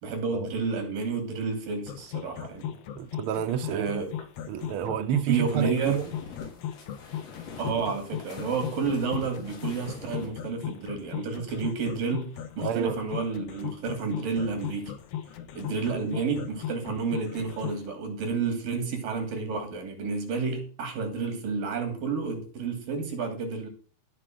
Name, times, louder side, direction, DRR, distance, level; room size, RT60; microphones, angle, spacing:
voice 1, 0.0-2.7 3.7-4.1 5.3-6.0 7.6-14.9 15.5-23.7, right 5 dB, 85° right, 4.5 m, -30 dB
sound 1, 1.9-17.8, left 10 dB, 60° left, 1.9 m, -37 dB
voice 2, 3.0-4.1 4.5-6.1 12.6-13.0, right 9 dB, 60° right, 1.5 m, -29 dB
sound 2, 4.0-10.3, left 5 dB, 85° left, 5.2 m, -45 dB
15.0 x 4.9 x 7.8 m
omnidirectional pair, 3.8 m